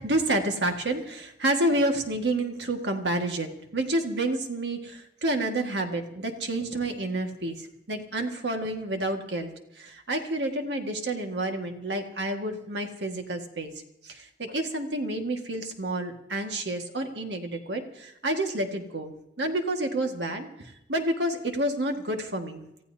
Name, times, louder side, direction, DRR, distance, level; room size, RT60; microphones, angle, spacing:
voice 1, 0.0-13.7 14.0-22.7, right 1 dB, 75° right, 4 dB, 1.8 m, -29 dB
28.5 x 14.5 x 2.8 m, 0.86 s
head